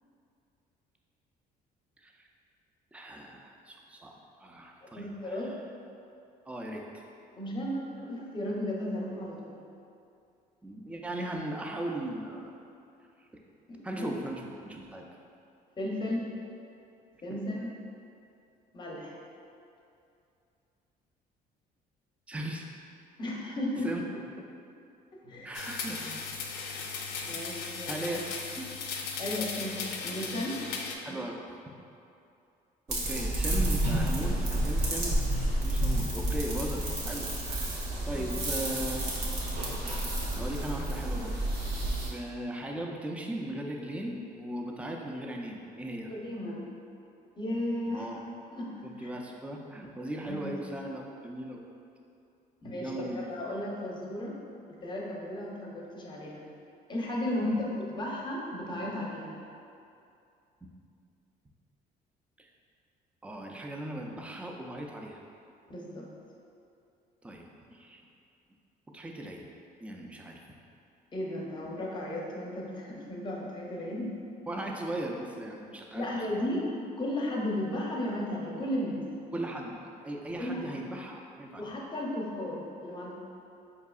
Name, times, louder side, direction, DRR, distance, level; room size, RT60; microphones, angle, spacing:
voice 1, 2.9-4.1 4.4-5.5 6.5-6.8 10.6-12.5 13.8-15.1 22.3-22.7 23.8-24.0 25.4-26.2 26.8-26.9 27.9-28.8 31.0-31.4 32.9-35.3 35.6-39.0 40.4-41.4 42.1-46.1 47.8-48.2 48.8-51.6 52.8-53.3 57.4-57.6 62.4-62.5 63.2-65.2 67.2-67.4 67.7-68.0 68.9-69.5 69.8-70.4 74.5-76.4 79.3-81.7, right 1 dB, 10° right, 0 dB, 0.3 m, -38 dB
voice 2, 4.8-5.5 7.4-9.6 13.7-14.1 15.8-16.3 17.2-17.7 18.7-19.1 23.2-23.9 25.2-25.5 27.2-28.0 29.2-30.6 38.1-38.3 46.1-46.6 47.3-48.1 48.5-49.1 50.3-50.5 52.6-54.4 54.7-56.4 56.9-59.3 65.7-66.1 71.1-74.1 75.9-76.7 77.0-79.1 80.4-80.7 81.6-83.1, left 1 dB, 25° left, -3 dB, 0.6 m, -34 dB
sound 1, 25.5-31.0, left 5 dB, 80° left, 0.4 m, -37 dB
sound 2, 32.9-42.1, right 1 dB, 90° right, 0.9 m, -30 dB
4.5 x 2.7 x 2.3 m, 2.6 s
cardioid pair, 110°, 17 cm